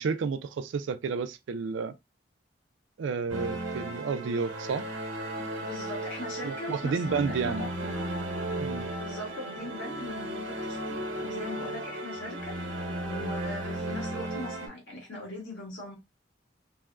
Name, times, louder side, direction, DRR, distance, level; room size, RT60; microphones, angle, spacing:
voice 1, 0.0-1.9 3.0-4.8 6.4-7.7 8.6-8.9, right 5 dB, 70° right, 0.3 m, -31 dB
sound 1, 3.3-14.7, right 1 dB, 90° right, 1.0 m, -35 dB
voice 2, 5.4-8.0 8.9-12.6 13.1-16.0, left 1 dB, 85° left, 1.6 m, -40 dB
3.4 x 2.1 x 2.3 m
head